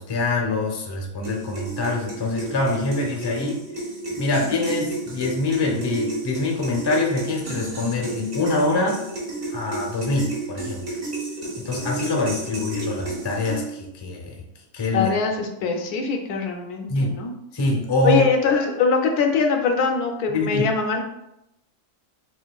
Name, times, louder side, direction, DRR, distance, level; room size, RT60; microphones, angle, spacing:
voice 1, 0.0-3.6 4.2-9.0 9.5-10.9 11.6-14.4 14.7-15.1 16.9-17.2 17.5-18.3 20.3-20.7, left 2 dB, 30° left, 0 dB, 0.4 m, -24 dB
sound 1, 1.2-13.9, right 2 dB, 45° right, 1.0 m, -32 dB
voice 2, 12.5-12.9 14.9-17.3 18.0-21.0, left 5 dB, 85° left, 3 dB, 1.2 m, -23 dB
6.3 x 2.5 x 2.3 m, 0.84 s
omnidirectional pair, 1.5 m